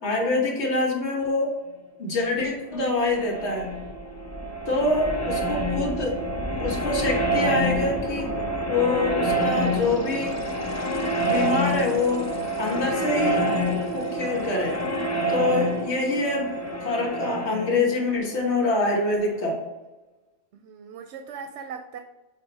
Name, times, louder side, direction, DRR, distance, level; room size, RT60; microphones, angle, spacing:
voice 1, 0.0-1.5 2.0-3.7 4.7-6.2 6.6-8.3 8.7-10.4 11.2-12.3 12.6-13.4 13.9-14.8 15.3-16.5 16.8-19.6, left 2 dB, 85° left, -1 dB, 1.6 m, -25 dB
sound 1, 2.7-19.4, right 1 dB, 20° left, 0.5 m, -27 dB
voice 2, 4.4-4.7 20.5-22.0, right 6 dB, 85° right, 6 dB, 0.9 m, -40 dB
8.2 x 2.9 x 4.0 m, 1.1 s
omnidirectional pair, 1.1 m